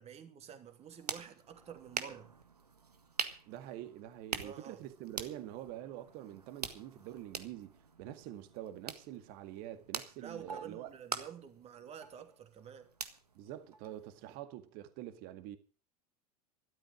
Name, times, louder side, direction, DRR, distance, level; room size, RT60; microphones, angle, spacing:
voice 1, 0.0-2.3 4.4-4.8 10.2-12.9, right 8 dB, 35° right, 2.8 m, -49 dB
sound 1, 0.6-14.3, right 4 dB, 90° right, 1.5 m, -45 dB
voice 2, 3.5-10.9 13.3-15.6, right 12 dB, 50° right, 2.0 m, -46 dB
13.5 x 12.0 x 6.3 m
figure-of-eight pair, 85°, 19 cm